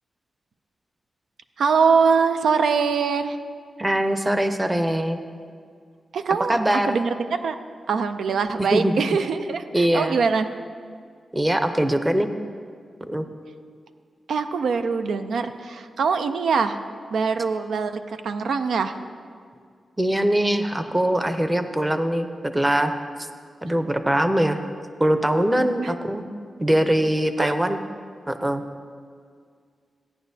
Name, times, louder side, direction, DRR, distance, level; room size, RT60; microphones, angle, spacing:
voice 1, 1.6-3.4 6.1-6.6 6.9-7.6 7.9-10.5 14.3-16.8 17.1-19.0 25.8-26.0 27.4-27.5, right 5 dB, 85° right, 8 dB, 0.5 m, -23 dB
voice 2, 3.8-5.2 6.5-7.0 8.6-8.9 9.7-10.2 11.3-12.3 13.1-13.2 20.0-22.9 23.6-24.6 25.0-26.2 26.6-27.8 28.3-28.6, right 1 dB, 15° right, 8 dB, 0.6 m, -22 dB
16.0 x 9.7 x 2.7 m, 2.1 s
wide cardioid pair, 100°, 0 cm